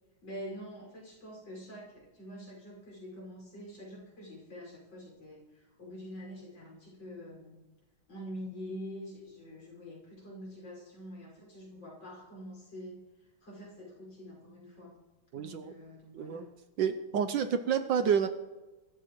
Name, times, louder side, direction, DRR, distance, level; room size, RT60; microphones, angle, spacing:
voice 1, 0.2-7.6 8.1-13.1 13.4-15.0 15.3-16.5, equal, 65° left, -3 dB, 6.6 m, -46 dB
voice 2, 15.3-15.7 16.1-16.5 16.8-18.3, right 7 dB, 70° right, 8 dB, 1.3 m, -29 dB
23.5 x 13.5 x 3.1 m, 1.1 s
omnidirectional pair, 2.3 m